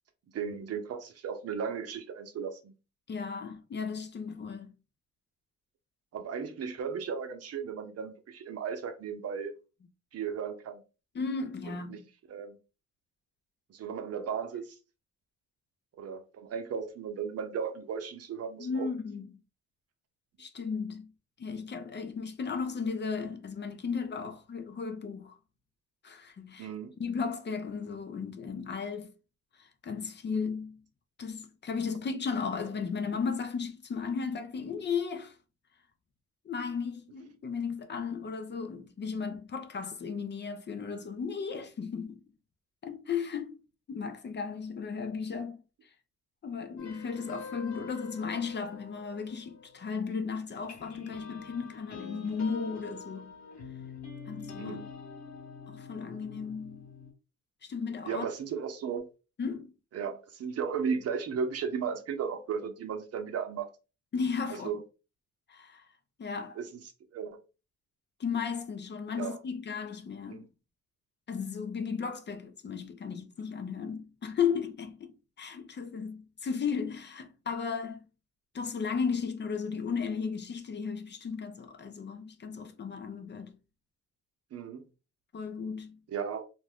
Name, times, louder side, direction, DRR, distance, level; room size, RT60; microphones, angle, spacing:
voice 1, 0.3-2.7 6.1-9.5 10.1-10.8 11.7-12.0 12.3-12.6 13.7-14.7 16.0-18.9 26.6-26.9 54.6-54.9 58.0-59.1 59.9-63.7 64.6-64.8 66.6-66.8 67.1-67.4 69.2-69.4 70.3-70.5 84.5-84.8 86.1-86.4, right 6 dB, 55° right, 0.6 m, -35 dB
voice 2, 3.1-4.7 11.1-12.0 18.6-19.3 20.4-21.1 21.4-25.3 26.0-26.7 27.0-29.1 29.6-30.8 31.2-35.4 36.4-42.2 42.8-43.6 43.9-45.6 46.4-53.3 54.3-54.8 55.7-56.9 57.6-58.6 59.4-59.7 64.1-64.7 65.5-65.8 66.2-66.6 68.2-70.5 71.3-78.0 78.5-83.5 85.3-86.0, left 5 dB, 35° left, 0.6 m, -35 dB
sound 1, 46.8-50.2 50.6-57.1, left 4 dB, 60° left, 1.3 m, -46 dB
2.6 x 2.2 x 3.4 m
cardioid pair, 90°, 30 cm